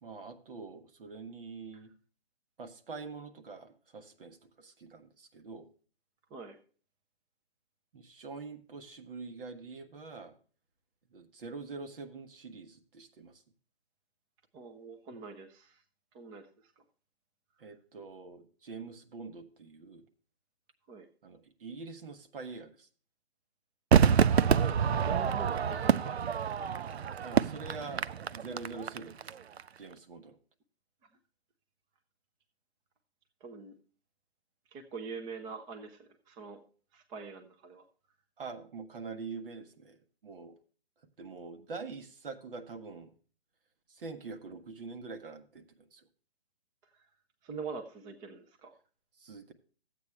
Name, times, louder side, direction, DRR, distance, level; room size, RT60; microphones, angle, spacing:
voice 1, 0.0-1.9 2.6-5.7 7.9-10.3 11.1-13.4 17.6-20.1 21.2-22.9 27.2-29.4 29.8-30.4 38.4-40.0 40.2-40.6 41.2-43.1 43.9-45.6 45.9-46.0 49.2-49.5, right 4 dB, 60° right, 8 dB, 1.4 m, -45 dB
voice 2, 14.5-15.8 16.1-16.7 20.9-21.1 24.4-26.6 33.4-33.8 34.7-36.6 36.9-37.9 46.9-47.0 47.4-48.8, right 4 dB, 15° right, 5 dB, 0.7 m, -44 dB
Crowd / Fireworks, 23.9-29.3 29.6-29.7, right 7 dB, 85° right, 0.5 m, -27 dB
13.0 x 8.3 x 3.3 m, 0.40 s
figure-of-eight pair, 135°, 31 cm